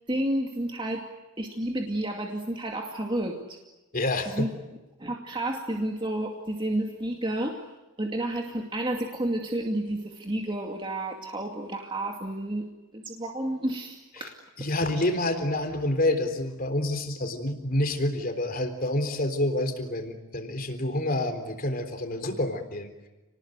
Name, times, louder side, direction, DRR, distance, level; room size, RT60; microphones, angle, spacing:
voice 1, 0.1-1.0 1.4-3.6 4.4-4.5 5.0-7.6 8.0-12.6 12.9-14.4 14.9-15.1, right 1 dB, 25° right, 1 dB, 2.3 m, -31 dB
voice 2, 3.9-4.5 14.2-14.3 14.6-22.9, left 1 dB, 45° left, 7 dB, 3.7 m, -28 dB
30.0 x 20.0 x 9.3 m, 1.1 s
head